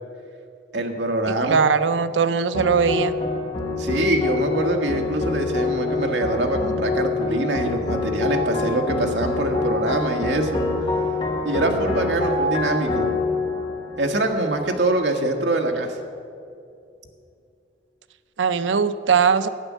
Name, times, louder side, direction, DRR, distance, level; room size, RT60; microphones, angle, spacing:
voice 1, 0.7-1.7 3.8-10.6 11.4-13.0 14.0-15.9, right 1 dB, 70° right, 3 dB, 1.4 m, -24 dB
voice 2, 1.3-3.1 18.4-19.5, right 6 dB, 85° right, 13 dB, 0.5 m, -20 dB
sound 1, 2.5-15.0, left 3 dB, 25° left, 1.1 m, -26 dB
11.0 x 9.2 x 7.4 m, 2.5 s
head